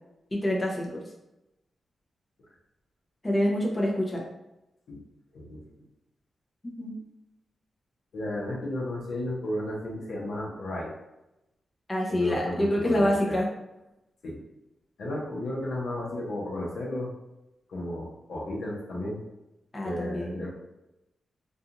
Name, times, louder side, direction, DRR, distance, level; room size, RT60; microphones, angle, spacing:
voice 1, 0.3-1.0 3.2-4.2 6.8-7.0 11.9-13.5 19.7-20.4, left 1 dB, 25° left, -2 dB, 0.5 m, -26 dB
voice 2, 8.1-10.9 12.1-13.4 14.2-14.4 15.0-17.1 17.7-19.2 19.8-20.5, left 1 dB, 75° left, -3 dB, 0.7 m, -33 dB
2.4 x 2.4 x 2.8 m, 0.93 s
cardioid pair, 85°, 0 cm